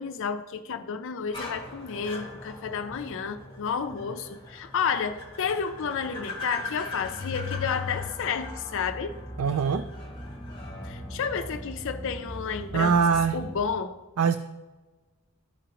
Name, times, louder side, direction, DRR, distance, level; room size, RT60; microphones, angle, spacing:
voice 1, 0.0-9.2 10.8-13.0 13.3-14.0, left 6 dB, 60° left, 9 dB, 0.4 m, -31 dB
sound 1, 1.3-13.7, left 1 dB, 25° left, 1.5 m, -40 dB
voice 2, 9.4-9.9 12.7-13.4 14.2-14.4, right 6 dB, 80° right, 11 dB, 0.4 m, -22 dB
14.0 x 5.0 x 2.9 m, 1.2 s
head